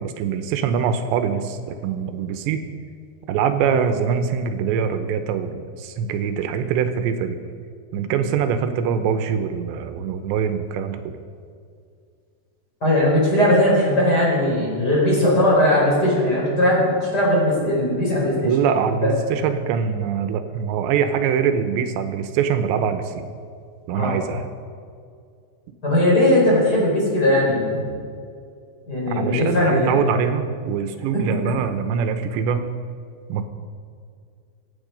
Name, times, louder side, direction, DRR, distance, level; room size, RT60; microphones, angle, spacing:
voice 1, 0.0-2.6 3.3-7.4 7.9-11.2 18.4-23.3 23.9-24.5 29.1-32.6 33.3-33.5, right 7 dB, 90° right, 8 dB, 3.1 m, -23 dB
voice 2, 12.8-18.5 19.0-19.1 24.0-24.1 25.8-27.9 28.9-30.0 31.1-31.2, left 1 dB, 20° left, -5 dB, 5.1 m, -19 dB
24.5 x 9.1 x 5.2 m, 2.2 s
omnidirectional pair, 5.1 m